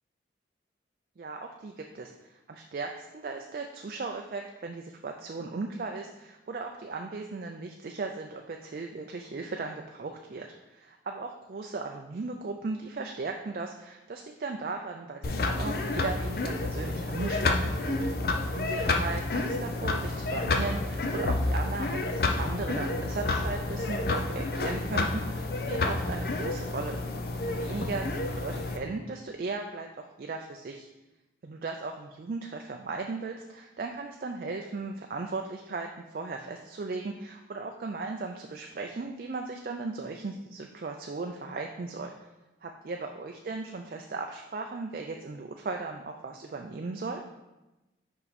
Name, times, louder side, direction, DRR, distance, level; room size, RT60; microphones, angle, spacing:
voice 1, 1.2-18.0 18.5-27.0 27.5-30.9 31.4-42.1 42.6-47.2, right 3 dB, 50° right, 3 dB, 0.4 m, -37 dB
sound 1, 15.2-28.8, left 2 dB, 50° left, 0.5 m, -29 dB
5.6 x 4.6 x 4.1 m, 1.0 s
head